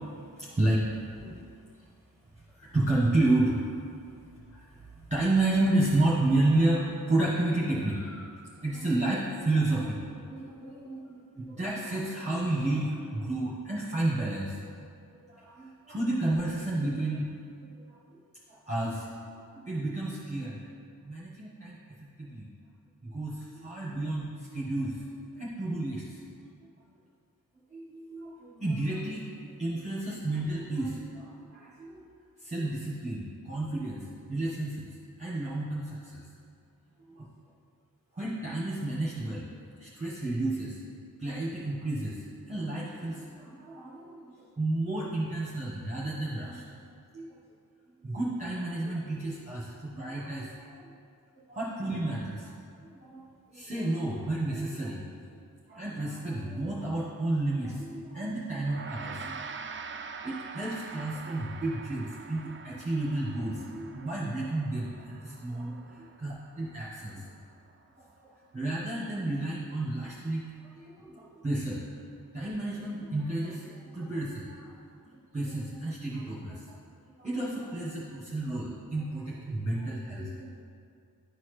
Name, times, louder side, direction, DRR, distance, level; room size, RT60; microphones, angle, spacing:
voice 1, 0.3-1.9 2.5-3.6 4.5-8.3 8.6-14.6 15.1-18.2 18.5-20.6 21.0-22.5 23.0-26.5 27.7-32.0 32.4-36.2 37.1-37.3 38.1-39.5 39.8-40.8 41.2-46.6 47.1-47.4 48.0-50.9 51.3-52.6 52.9-53.2 53.5-55.2 55.7-59.3 59.6-59.8 60.1-65.9 66.2-67.3 68.0-71.8 72.3-74.8 75.0-76.8 77.2-80.6, right 2 dB, 20° right, -8 dB, 1.3 m, -31 dB
Gong, 58.6-68.2, right 5 dB, 35° right, 0.4 m, -45 dB
11.5 x 4.2 x 3.3 m, 2.3 s
wide cardioid pair, 75°, 37 cm